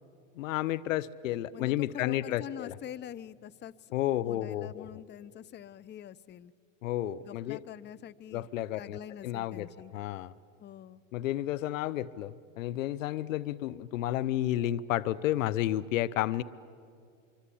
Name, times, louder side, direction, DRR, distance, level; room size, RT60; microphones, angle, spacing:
voice 1, 0.4-2.7 3.9-4.9 6.8-7.6 8.3-9.7 9.9-10.3 11.1-16.4, left 13 dB, 85° left, 16 dB, 0.8 m, -31 dB
voice 2, 1.5-3.9 4.2-6.5 7.2-8.5 8.8-9.9 10.6-11.0, left 10 dB, 25° left, 17 dB, 0.7 m, -45 dB
25.0 x 25.0 x 8.5 m, 2.3 s
hypercardioid pair, 100°, 39 cm